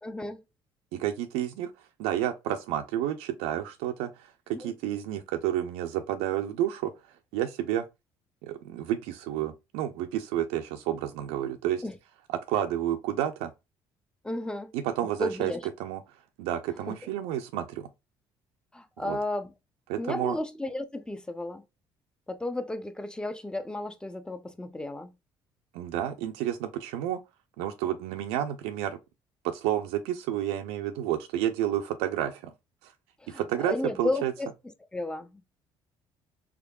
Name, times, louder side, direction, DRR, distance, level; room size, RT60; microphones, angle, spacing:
voice 1, 0.0-0.4 4.5-4.7 11.8-12.0 14.2-14.7 15.0-15.6 16.9-17.0 18.7-19.5 20.0-21.6 22.3-25.1 33.2-34.5 34.9-35.4, left 2 dB, 10° left, 0.6 m, -33 dB
voice 2, 0.9-6.9 7.3-7.8 8.4-11.8 12.5-13.5 14.7-15.5 15.8-16.0 16.4-17.9 19.0-19.2 19.9-20.4 25.7-27.2 27.6-29.0 29.4-32.5 32.8-32.9 33.3-34.3, right 11 dB, 85° right, 0.4 m, -30 dB
3.5 x 3.5 x 2.3 m
supercardioid pair, 80°, 10 cm